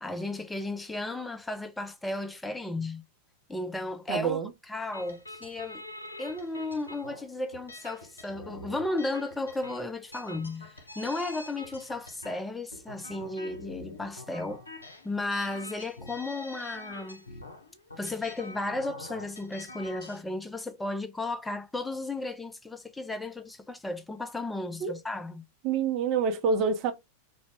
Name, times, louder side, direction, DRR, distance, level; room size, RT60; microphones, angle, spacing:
voice 1, 0.0-3.0 3.5-4.4 4.7-5.8 6.2-14.6 15.0-17.2 18.0-25.4, left 2 dB, 5° left, 0.4 m, -34 dB
voice 2, 4.1-4.5 24.8-24.9 25.6-26.9, right 5 dB, 40° right, 0.6 m, -27 dB
sound 1, 4.9-20.2, left 2 dB, 80° left, 0.6 m, -45 dB
2.5 x 2.1 x 3.2 m
figure-of-eight pair, 90°, 0 cm